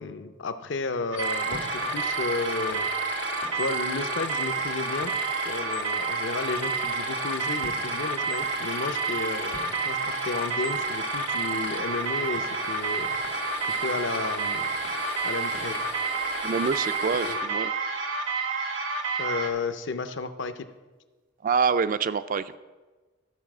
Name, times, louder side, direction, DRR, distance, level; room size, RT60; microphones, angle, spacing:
voice 1, 0.0-2.9 3.5-5.1 5.4-13.2 13.7-14.7 15.2-15.8 17.2-17.4 19.2-20.7, left 3 dB, 65° left, 10 dB, 0.6 m, -33 dB
sound 1, 1.1-19.5, right 4 dB, 90° right, 1.1 m, -29 dB
sound 2, 1.2-17.4, left 4 dB, 80° left, 1.8 m, -38 dB
voice 2, 16.4-17.7 21.4-22.6, right 5 dB, 45° right, 14 dB, 0.3 m, -26 dB
12.5 x 4.7 x 6.0 m, 1.3 s
head